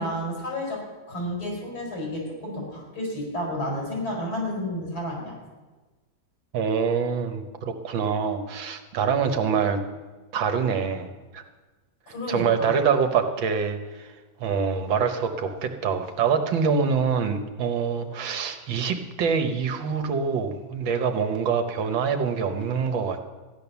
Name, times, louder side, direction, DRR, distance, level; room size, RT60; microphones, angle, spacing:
voice 1, 0.0-5.4 12.1-12.8, left 1 dB, 80° left, -2 dB, 6.0 m, -31 dB
voice 2, 6.5-9.8 10.3-11.1 11.3-11.4 12.3-14.1 14.4-23.3, right 6 dB, 75° right, 7 dB, 1.9 m, -25 dB
14.5 x 10.5 x 7.0 m, 1.3 s
omnidirectional pair, 2.2 m